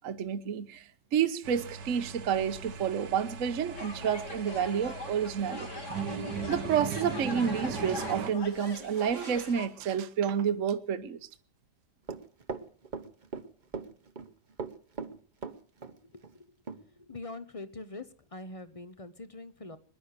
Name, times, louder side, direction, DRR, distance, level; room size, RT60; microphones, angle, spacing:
voice 1, 0.0-5.8 6.5-11.2, right 8 dB, 55° right, 1.2 m, -30 dB
sound 1, 1.4-8.3, right 6 dB, 85° right, 2.0 m, -39 dB
sound 2, 3.8-9.7, left 4 dB, 45° left, 2.3 m, -42 dB
Run, 12.1-13.5 13.7-14.3 14.6-15.9 16.2-16.3 16.7-16.8, right 5 dB, 35° right, 1.0 m, -38 dB
voice 2, 17.1-18.0 18.3-19.8, left 2 dB, 25° left, 0.8 m, -42 dB
20.5 x 10.5 x 6.6 m
omnidirectional pair, 1.8 m